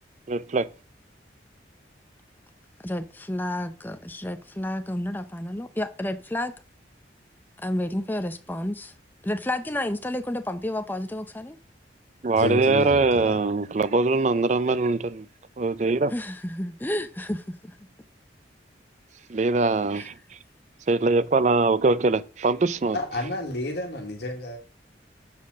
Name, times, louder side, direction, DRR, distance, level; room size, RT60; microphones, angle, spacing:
voice 1, 0.3-0.7 12.2-15.3 15.6-16.1 19.3-20.1 20.9-23.0, right 3 dB, 40° right, 0.4 m, -22 dB
voice 2, 2.8-6.5 7.6-8.9 9.2-11.6 16.1-17.8 19.9-20.1, left 1 dB, 10° left, 0.5 m, -30 dB
voice 3, 12.4-13.4 22.9-24.6, left 1 dB, 60° left, 1.6 m, -30 dB
7.4 x 4.2 x 6.2 m
head